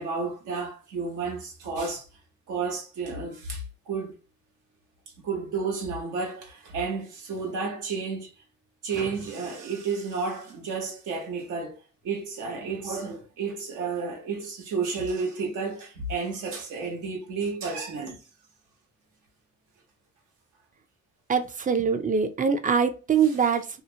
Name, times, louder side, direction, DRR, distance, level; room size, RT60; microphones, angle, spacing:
voice 1, 0.0-2.0 2.5-4.1 5.2-8.3 8.8-11.8 12.0-18.2, right 4 dB, 85° right, 1.0 m, -31 dB
voice 2, 21.3-23.8, right 6 dB, 25° right, 0.4 m, -23 dB
2.8 x 2.0 x 2.7 m
cardioid pair, 90°, 30 cm